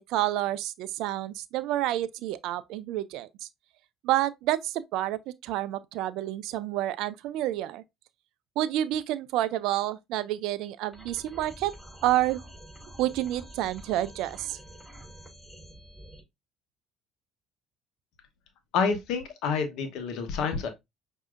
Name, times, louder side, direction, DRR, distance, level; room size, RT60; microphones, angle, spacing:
voice 1, 0.1-3.3 4.0-7.8 8.6-11.7 12.0-12.4 13.0-14.6, right 14 dB, 70° right, 0.3 m, -29 dB
sound 1, 10.9-16.2, right 1 dB, 5° right, 3.1 m, -47 dB
voice 2, 18.7-20.7, left 5 dB, 70° left, 1.0 m, -28 dB
5.9 x 2.7 x 2.4 m
hypercardioid pair, 70°, 0 cm